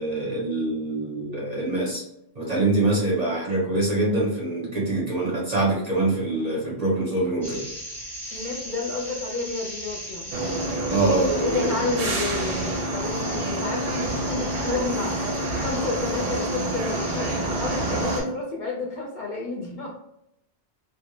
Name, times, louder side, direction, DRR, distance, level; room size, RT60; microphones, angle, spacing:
voice 1, 0.0-2.0 2.4-7.6 10.9-11.7, right 2 dB, 45° right, -4 dB, 0.6 m, -24 dB
sound 1, 7.4-18.2, equal, ahead, 0.6 m, -37 dB
voice 2, 8.3-10.3 11.4-20.0, left 3 dB, 55° left, -3 dB, 0.6 m, -31 dB
sound 2, 10.3-18.2, right 1 dB, 75° right, 0.9 m, -28 dB
2.1 x 2.0 x 3.0 m, 0.78 s
omnidirectional pair, 1.2 m